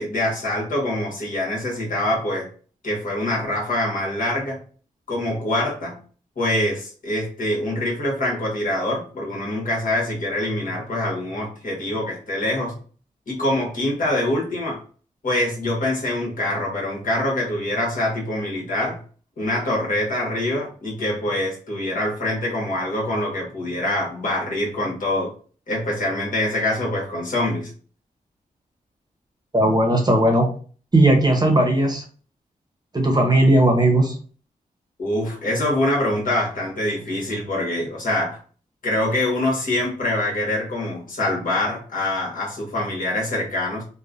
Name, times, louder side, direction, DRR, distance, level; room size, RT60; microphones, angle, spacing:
voice 1, 0.0-2.5 2.8-4.6 5.1-6.0 6.4-12.8 13.3-14.8 15.2-19.0 19.4-25.3 25.7-27.7 35.0-38.4 38.8-43.8, left 1 dB, 60° left, -3 dB, 1.3 m, -24 dB
voice 2, 29.5-30.5 30.9-32.0 32.9-34.2, right 1 dB, 25° right, 3 dB, 0.8 m, -17 dB
3.0 x 2.1 x 2.5 m, 0.41 s
cardioid pair, 50°, 15 cm